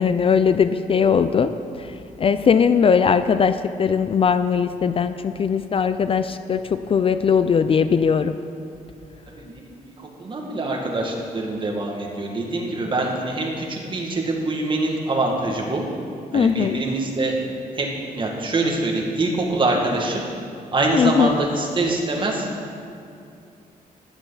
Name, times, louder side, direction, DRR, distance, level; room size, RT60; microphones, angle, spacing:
voice 1, 0.0-8.4 16.3-16.8 20.9-21.4, left 6 dB, 40° left, 11 dB, 0.4 m, -20 dB
voice 2, 9.3-15.8 16.3-17.3 17.7-20.2 20.7-22.5, right 2 dB, 35° right, 0 dB, 1.9 m, -24 dB
14.5 x 10.5 x 4.1 m, 2.5 s
cardioid pair, 120°, 15 cm